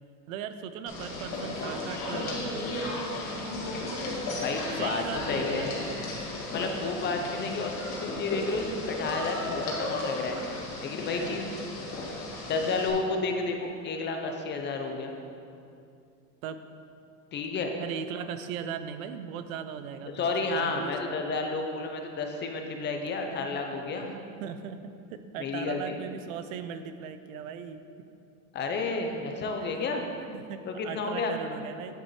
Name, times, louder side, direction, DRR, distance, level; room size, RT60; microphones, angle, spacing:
voice 1, 0.3-3.0 4.3-4.4 4.7-6.3 16.4-16.6 17.8-21.1 24.1-27.8 29.6-29.7 30.3-32.0, right 7 dB, 85° right, 10 dB, 0.7 m, -39 dB
sound 1, 0.9-12.9, left 2 dB, 50° left, 2.0 m, -34 dB
voice 2, 4.4-5.7 6.5-10.4 10.8-11.5 12.4-15.1 17.3-17.7 20.1-24.1 25.4-26.0 28.5-30.1 30.7-31.3, left 3 dB, 25° left, 3 dB, 0.7 m, -31 dB
9.1 x 7.4 x 3.2 m, 2.5 s
supercardioid pair, 140°, 40 cm